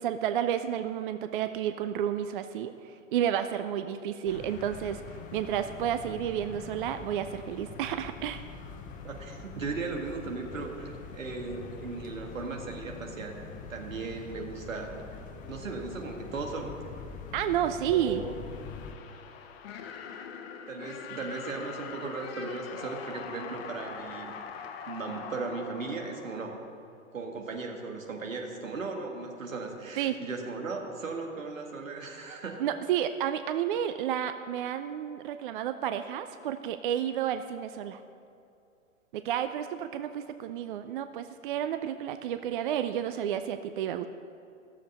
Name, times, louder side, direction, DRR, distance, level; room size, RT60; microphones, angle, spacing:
voice 1, 0.0-8.5 17.3-18.2 30.0-30.2 32.6-38.0 39.1-44.1, right 10 dB, 40° right, 10 dB, 0.4 m, -31 dB
sound 1, 4.3-18.9, left 5 dB, 20° left, 0.8 m, -44 dB
voice 2, 9.0-13.4 13.7-15.0 15.5-16.8 17.9-18.4 20.7-24.4 24.8-26.6 27.1-32.6, right 4 dB, 75° right, 1 dB, 1.9 m, -37 dB
sound 2, 18.1-26.9, left 6 dB, 50° left, 1.0 m, -43 dB
15.0 x 7.2 x 5.5 m, 2.5 s
figure-of-eight pair, 110°, 39 cm